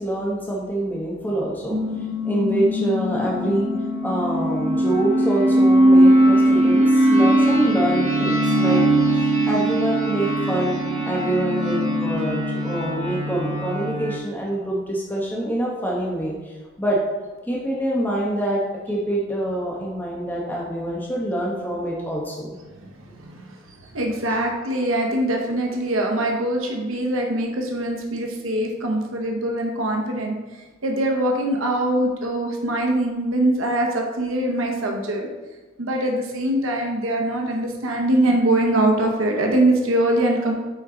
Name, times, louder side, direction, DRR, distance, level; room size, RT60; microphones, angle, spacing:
voice 1, 0.0-3.7 4.0-8.8 9.5-17.0 17.5-22.6, right 1 dB, 10° left, -4 dB, 0.9 m, -25 dB
The Waves, 1.7-14.2, right 1 dB, 35° right, 1.3 m, -20 dB
voice 2, 22.7-23.4 23.9-30.4 30.8-35.3 35.8-40.6, right 1 dB, 80° right, 1 dB, 0.9 m, -23 dB
8.7 x 4.4 x 3.8 m, 1.2 s
head